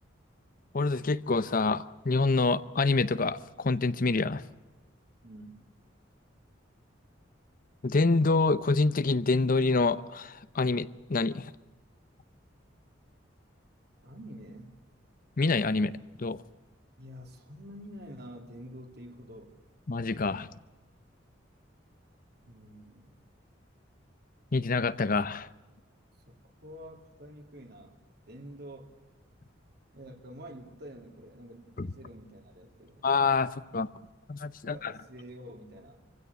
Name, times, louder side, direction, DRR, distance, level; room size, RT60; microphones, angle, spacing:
voice 1, 0.7-4.4 7.8-11.5 15.4-16.4 19.9-20.5 24.5-25.5 31.8-31.9 33.0-33.9 34.3-34.9, left 3 dB, 45° left, 0.7 m, -26 dB
voice 2, 5.2-5.7 14.0-14.8 17.0-19.6 22.4-23.2 26.3-28.9 29.9-33.1 34.6-36.0, equal, 55° right, 2.7 m, -48 dB
25.5 x 16.0 x 6.9 m
head